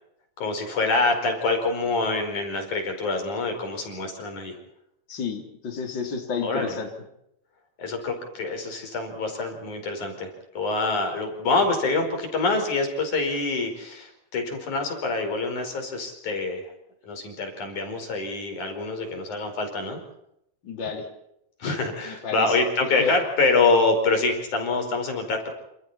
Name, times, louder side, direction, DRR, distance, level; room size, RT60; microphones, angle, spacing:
voice 1, 0.4-4.5 6.4-6.8 7.8-16.6 17.0-20.0 21.6-25.5, left 3 dB, 90° left, 4 dB, 6.3 m, -26 dB
voice 2, 5.1-6.9 20.6-21.1 22.1-22.6 23.0-23.1, left 5 dB, 40° left, 3 dB, 4.0 m, -31 dB
28.0 x 28.0 x 4.3 m, 0.79 s
omnidirectional pair, 3.3 m